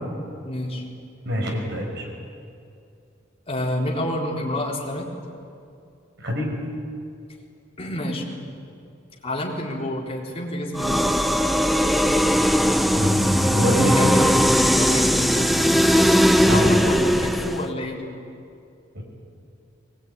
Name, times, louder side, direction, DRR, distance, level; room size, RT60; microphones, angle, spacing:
voice 1, 0.4-0.8 3.5-5.1 7.8-8.5 9.2-11.1 14.0-15.7 16.5-18.1, left 1 dB, 30° left, -2 dB, 4.1 m, -29 dB
voice 2, 1.3-2.1 6.2-6.5 12.9-14.3 16.4-16.8 19.0-19.1, equal, 60° right, 1 dB, 5.6 m, -24 dB
sound 1, 10.8-17.7, equal, ahead, 0.7 m, -19 dB
22.5 x 20.5 x 9.6 m, 2.5 s
head